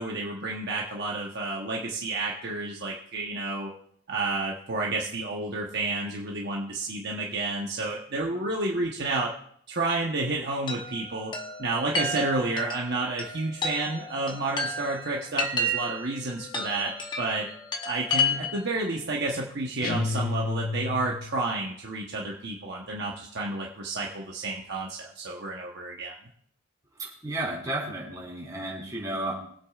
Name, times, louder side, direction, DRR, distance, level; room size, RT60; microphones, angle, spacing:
voice 1, 0.0-3.7 4.1-9.3 9.7-11.3 11.6-16.9 17.2-17.5 17.8-26.1, right 2 dB, 50° right, -1 dB, 1.1 m, -30 dB
Chime, 10.7-18.8, left 2 dB, 20° left, 0.9 m, -32 dB
sound 1, 19.8-21.5, left 3 dB, 45° left, 0.6 m, -30 dB
voice 2, 27.0-29.3, right 2 dB, 15° right, -5 dB, 4.0 m, -33 dB
23.0 x 8.3 x 2.4 m, 0.65 s
head